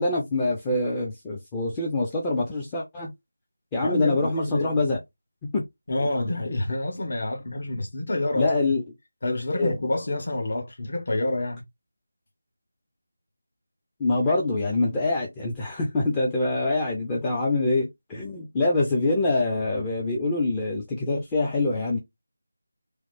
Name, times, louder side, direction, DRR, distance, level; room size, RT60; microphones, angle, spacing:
voice 1, 0.0-3.1 3.7-5.0 5.4-5.6 6.5-6.6 8.3-8.8 9.5-9.7 14.0-22.0, left 2 dB, 15° left, 0.4 m, -25 dB
voice 2, 3.8-4.8 5.9-8.7 9.2-11.6, left 2 dB, 50° left, 0.9 m, -28 dB
3.1 x 2.0 x 3.1 m
figure-of-eight pair, 165°, 0 cm